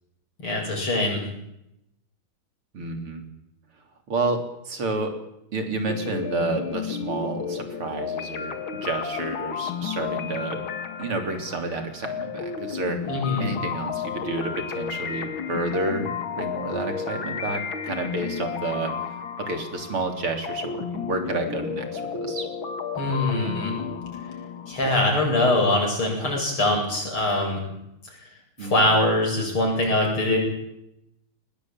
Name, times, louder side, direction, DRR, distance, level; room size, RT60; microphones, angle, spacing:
voice 1, 0.4-1.2 13.1-13.5 23.0-23.8 24.7-27.6 28.6-30.4, left 1 dB, 85° left, 1 dB, 9.1 m, -23 dB
voice 2, 2.7-3.2 4.1-5.1 5.5-8.5 8.8-10.6 11.0-13.0 13.4-18.9 19.4-22.5 28.6-28.9, right 3 dB, 90° right, 5 dB, 4.4 m, -30 dB
sound 1, 5.9-25.1, left 6 dB, 70° left, 2.5 m, -32 dB
21.5 x 20.0 x 9.0 m, 0.83 s
omnidirectional pair, 2.3 m